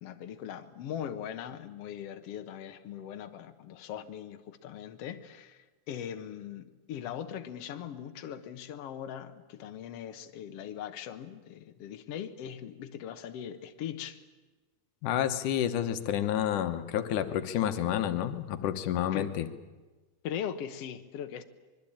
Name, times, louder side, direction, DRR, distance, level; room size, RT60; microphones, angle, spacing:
voice 1, 0.0-14.2 19.1-19.4 20.2-21.4, left 9 dB, 60° left, 7 dB, 2.0 m, -40 dB
voice 2, 15.0-19.5, left 10 dB, 85° left, 8 dB, 2.6 m, -29 dB
24.5 x 22.5 x 8.8 m, 1.2 s
omnidirectional pair, 3.5 m